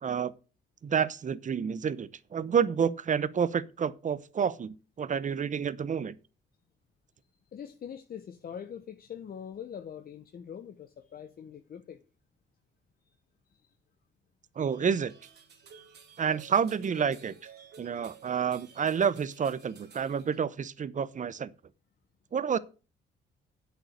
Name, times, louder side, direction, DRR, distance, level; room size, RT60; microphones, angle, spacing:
voice 1, 0.0-0.3 0.8-6.1 14.6-15.1 16.2-17.3 17.8-21.5 22.3-22.6, right 7 dB, 40° right, 0.9 m, -29 dB
voice 2, 7.5-12.0, left 8 dB, 50° left, 0.9 m, -43 dB
sound 1, 14.7-20.4, right 7 dB, 55° right, 2.5 m, -54 dB
7.9 x 6.8 x 7.8 m
cardioid pair, 90°, 20 cm